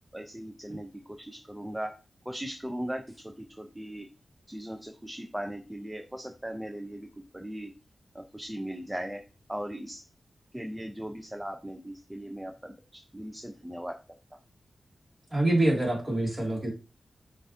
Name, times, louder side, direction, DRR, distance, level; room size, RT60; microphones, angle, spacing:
voice 1, 0.1-1.9 2.3-4.1 4.5-7.7 8.1-9.2 9.5-10.0 10.5-13.9, equal, 10° right, 4 dB, 0.5 m, -38 dB
voice 2, 15.3-16.7, right 1 dB, 30° right, -1 dB, 1.8 m, -25 dB
6.5 x 2.5 x 2.7 m, 0.32 s
wide cardioid pair, 80°, 0 cm